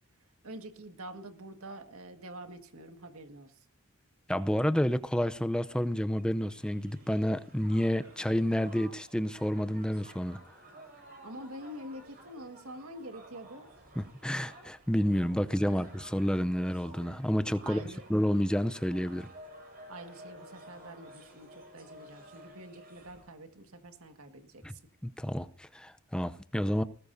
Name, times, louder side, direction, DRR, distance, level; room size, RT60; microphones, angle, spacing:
voice 1, 0.4-3.7 11.2-13.7 15.6-16.0 17.6-18.1 19.9-24.8, right 1 dB, 75° right, 1.8 m, -46 dB
voice 2, 4.3-10.4 14.0-17.8 18.1-19.3 24.6-24.7 25.0-26.8, equal, 5° left, 0.6 m, -29 dB
Crowd, 6.0-23.3, right 1 dB, 45° right, 5.7 m, -54 dB
19.5 x 19.5 x 2.7 m
head